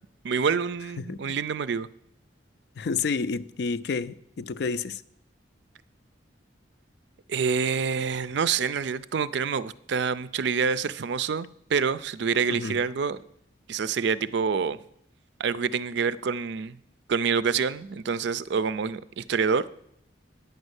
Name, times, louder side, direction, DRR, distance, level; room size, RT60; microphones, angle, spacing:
voice 1, 0.2-1.9 7.3-13.2 13.7-14.8 15.4-16.8 17.1-19.6, right 6 dB, 65° right, 0.4 m, -27 dB
voice 2, 1.0-1.4 2.8-5.0 12.5-12.7, left 4 dB, 55° left, 0.4 m, -30 dB
9.3 x 5.4 x 8.0 m
head